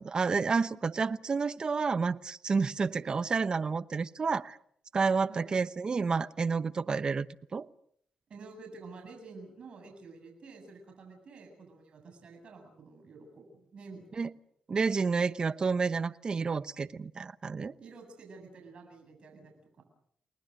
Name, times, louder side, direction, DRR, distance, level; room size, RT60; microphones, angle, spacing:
voice 1, 0.0-4.6 4.9-7.3 7.5-7.7 14.2-14.3 14.7-17.8, right 5 dB, 40° right, 16 dB, 0.9 m, -30 dB
voice 2, 8.3-14.0 17.8-19.8, right 3 dB, 60° right, 4 dB, 7.6 m, -50 dB
30.0 x 20.5 x 6.6 m, 0.65 s
cardioid pair, 65°, 2 cm